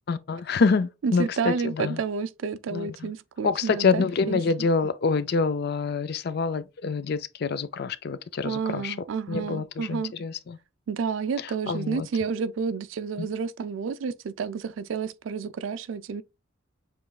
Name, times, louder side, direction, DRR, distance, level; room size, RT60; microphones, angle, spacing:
voice 1, 0.1-2.0 2.7-3.1 3.4-9.0 9.3-10.6 11.7-12.1, left 4 dB, 55° left, 0.4 m, -26 dB
voice 2, 1.0-4.7 8.4-10.1 10.9-16.2, right 5 dB, 75° right, 0.4 m, -30 dB
6.9 x 3.1 x 2.3 m
head